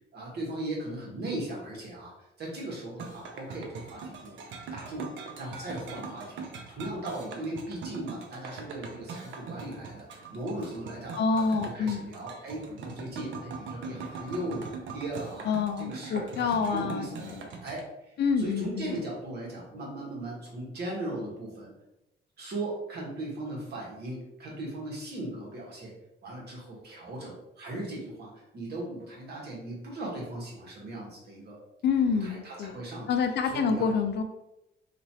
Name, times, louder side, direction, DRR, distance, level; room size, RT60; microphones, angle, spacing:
voice 1, 0.1-2.1 2.4-4.3 4.7-5.1 5.4-14.6 14.9-15.5 15.8-17.4 17.6-17.8 18.4-21.7 22.4-25.9 26.2-31.6 32.1-33.1 33.4-33.9, right 1 dB, 55° right, -3 dB, 1.2 m, -38 dB
sound 1, 3.0-17.8, right 4 dB, 70° right, 0.6 m, -42 dB
voice 2, 11.2-12.0 15.5-17.4 18.2-18.9 31.8-32.8 33.1-34.2, left 5 dB, 60° left, 6 dB, 0.4 m, -27 dB
3.0 x 2.5 x 2.7 m, 0.90 s
cardioid pair, 90°, 20 cm